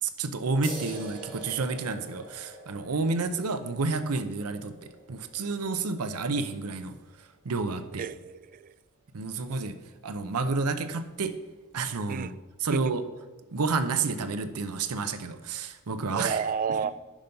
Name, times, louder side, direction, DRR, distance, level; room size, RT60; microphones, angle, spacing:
voice 1, 0.0-7.0 7.4-8.0 9.1-9.8 10.0-11.4 11.7-12.3 12.6-13.0 13.5-16.4 16.8-16.9, right 4 dB, 80° right, 10 dB, 0.7 m, -30 dB
sound 1, 0.6-7.8, right 2 dB, 20° right, 2.5 m, -46 dB
voice 2, 8.0-8.7 12.1-12.3 12.7-12.9 16.1-16.9, right 6 dB, 40° right, 16 dB, 0.3 m, -31 dB
10.0 x 5.4 x 5.3 m, 1.2 s
head